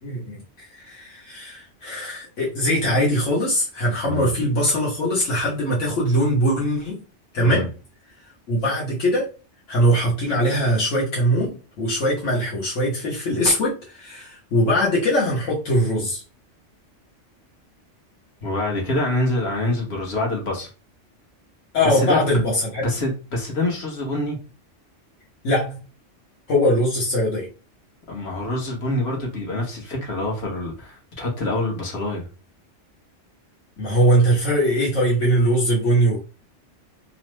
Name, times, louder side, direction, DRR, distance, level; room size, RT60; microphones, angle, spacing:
voice 1, 0.0-7.0 7.3-7.7 8.5-9.3 9.7-16.2 21.7-22.9 25.4-25.8 26.5-27.5 33.8-36.2, equal, 80° left, 1.3 m, -21 dB
voice 2, 18.4-20.7 21.8-22.4 22.8-24.4 28.1-32.3, left 2 dB, 60° left, 1.2 m, -26 dB
3.0 x 2.0 x 3.1 m
omnidirectional pair, 1.3 m